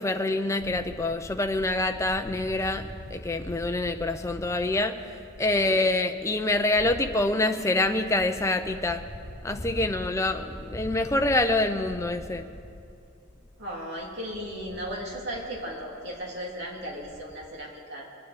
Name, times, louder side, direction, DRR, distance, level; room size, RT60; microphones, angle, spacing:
voice 1, 0.0-5.0 5.4-9.1 9.4-12.5, left 2 dB, 15° left, 6 dB, 0.5 m, -26 dB
sound 1, 0.6-17.5, left 1 dB, 40° left, 1.3 m, -44 dB
voice 2, 13.6-18.1, equal, 50° right, -3 dB, 3.0 m, -36 dB
23.0 x 9.7 x 5.1 m, 2.5 s
head